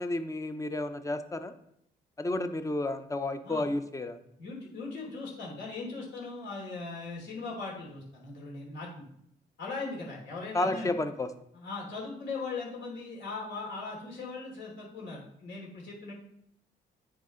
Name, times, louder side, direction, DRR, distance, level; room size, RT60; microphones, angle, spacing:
voice 1, 0.0-1.5 2.2-4.2 10.5-11.3, left 2 dB, 15° left, 9 dB, 0.6 m, -31 dB
voice 2, 4.4-9.0 9.6-10.9 11.5-16.1, left 3 dB, 65° left, -3 dB, 3.1 m, -39 dB
9.7 x 3.7 x 3.8 m, 0.73 s
cardioid pair, 90°, 20 cm